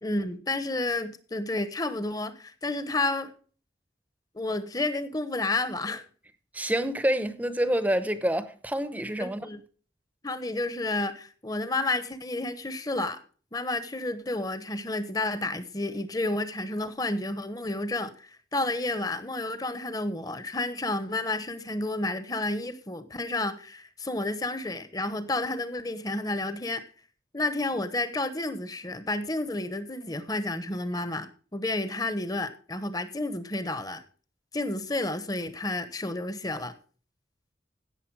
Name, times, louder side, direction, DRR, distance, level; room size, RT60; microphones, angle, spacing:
voice 1, 0.0-3.3 4.3-6.0 9.2-9.6 10.2-13.2 13.5-26.8 27.3-34.0 34.5-36.7, left 2 dB, 20° left, 1.0 m, -31 dB
voice 2, 6.5-9.5, right 1 dB, 10° right, 0.8 m, -27 dB
16.5 x 6.8 x 4.7 m
head